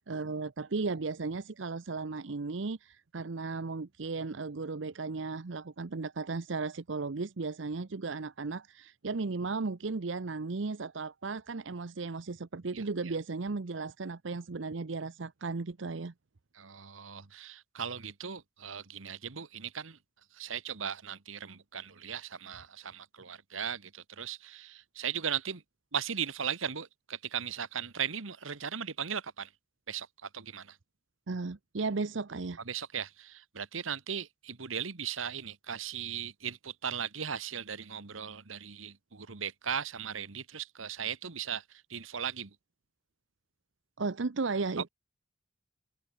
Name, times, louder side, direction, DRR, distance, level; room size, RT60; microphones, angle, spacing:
voice 1, 0.1-16.1 31.3-32.6 44.0-44.9, right 4 dB, 70° right, 0.7 m, -35 dB
voice 2, 16.5-20.0 20.3-25.6 25.9-29.5 29.9-30.8 32.6-42.5, right 8 dB, 85° right, 1.4 m, -38 dB
head